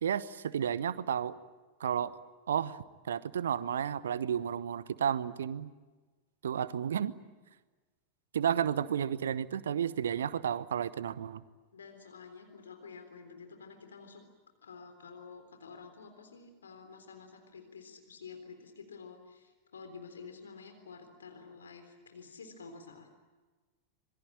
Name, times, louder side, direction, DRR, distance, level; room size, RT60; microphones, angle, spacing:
voice 1, 0.0-1.4 1.8-2.2 2.5-2.8 3.1-5.7 6.4-7.1 8.3-11.4, right 8 dB, 65° right, 18 dB, 0.9 m, -32 dB
voice 2, 11.7-14.2 14.6-23.2, left 5 dB, 70° left, 6 dB, 3.7 m, -50 dB
27.0 x 22.0 x 8.8 m, 1.3 s
figure-of-eight pair, 90°, 0 cm